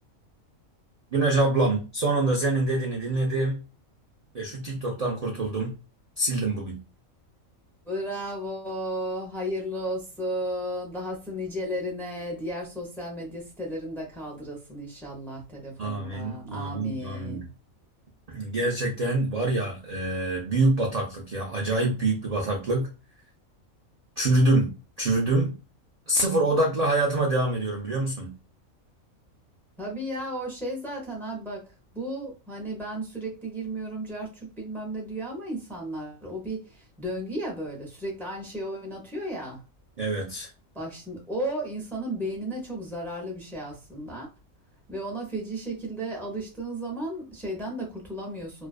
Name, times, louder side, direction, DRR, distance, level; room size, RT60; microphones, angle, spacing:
voice 1, 1.1-3.6 4.3-5.7 6.2-6.8 15.8-17.4 18.3-22.9 24.2-24.7 25.0-25.5 26.1-28.3 40.0-40.5, right 2 dB, 60° right, -1 dB, 0.4 m, -25 dB
voice 2, 7.9-17.5 29.8-31.7 31.9-39.6 40.7-44.3 44.9-48.7, right 1 dB, ahead, -2 dB, 0.5 m, -34 dB
2.4 x 2.3 x 2.3 m, 0.31 s
omnidirectional pair, 1.4 m